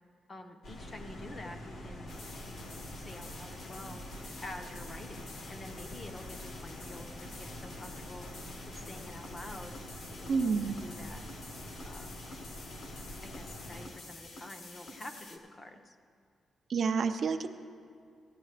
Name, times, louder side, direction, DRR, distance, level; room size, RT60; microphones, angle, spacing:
voice 1, 0.3-2.1 2.5-4.0 4.4-8.3 8.6-9.8 10.1-11.2 11.8-12.1 13.2-16.0, left 1 dB, 25° left, 5 dB, 0.6 m, -48 dB
sound 1, 0.6-13.9, left 1 dB, 80° left, 1.3 m, -46 dB
sound 2, 2.1-15.4, left 2 dB, 55° left, 1.0 m, -49 dB
voice 2, 10.3-10.8 16.7-17.5, right 5 dB, 45° right, 8 dB, 0.4 m, -29 dB
15.5 x 10.5 x 3.3 m, 2.3 s
wide cardioid pair, 175°, 0 cm